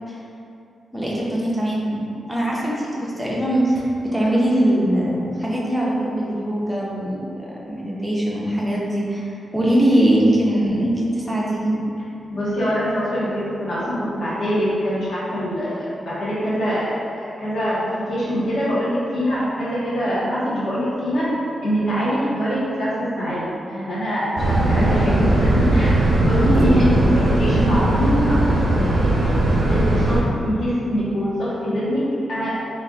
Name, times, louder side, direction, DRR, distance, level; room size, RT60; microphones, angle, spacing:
voice 1, 0.9-2.0 2.3-11.8 26.4-26.9, right 1 dB, ahead, -5 dB, 0.5 m, -21 dB
voice 2, 12.3-21.3 21.6-32.5, equal, 60° left, -10 dB, 1.2 m, -24 dB
sound 1, 24.4-30.2, right 1 dB, 55° right, 0.6 m, -18 dB
3.4 x 2.4 x 3.7 m, 2.6 s
wide cardioid pair, 180°, 0 cm